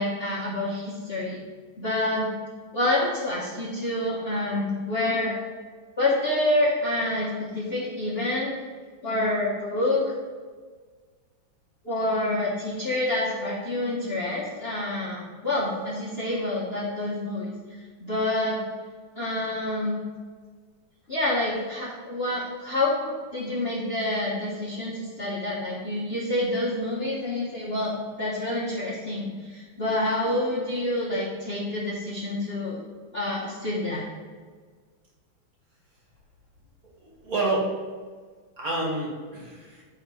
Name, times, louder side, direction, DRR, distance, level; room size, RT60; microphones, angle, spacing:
voice 1, 0.0-1.4 1.8-2.3 2.7-5.3 6.0-8.5 9.0-10.0 11.8-17.5 18.0-18.6 19.2-20.0 21.1-27.9 28.2-32.8 33.1-34.0, left 1 dB, 40° left, -7 dB, 1.0 m, -27 dB
voice 2, 37.0-37.7 38.6-39.8, right 2 dB, 50° right, -3 dB, 1.6 m, -28 dB
8.9 x 3.6 x 4.7 m, 1.5 s
omnidirectional pair, 2.2 m